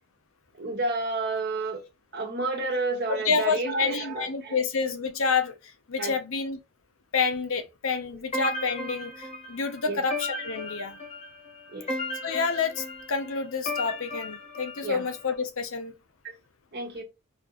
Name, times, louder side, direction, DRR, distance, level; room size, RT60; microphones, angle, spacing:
voice 1, 0.6-1.8 2.1-4.6 6.0-6.1 9.8-10.0 11.7-11.9 14.8-15.0 16.2-16.3 16.7-17.0, right 3 dB, 50° right, 1.3 m, -30 dB
voice 2, 3.1-5.6 5.9-6.6 7.1-11.0 12.2-15.9, left 5 dB, 65° left, 0.7 m, -28 dB
sound 1, 8.3-15.3, left 2 dB, 30° left, 0.9 m, -36 dB
4.1 x 2.7 x 3.0 m
head